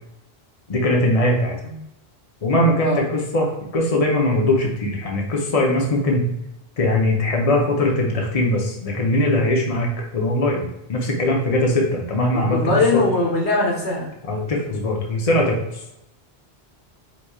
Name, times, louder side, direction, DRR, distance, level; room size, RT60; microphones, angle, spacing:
voice 1, 0.7-1.5 2.4-6.2 6.8-12.6 12.9-13.0 14.3-15.6, left 1 dB, 35° left, 0 dB, 0.9 m, -20 dB
voice 2, 12.3-14.1, left 2 dB, 85° left, -2 dB, 1.5 m, -21 dB
4.9 x 4.2 x 2.4 m, 0.84 s
omnidirectional pair, 1.1 m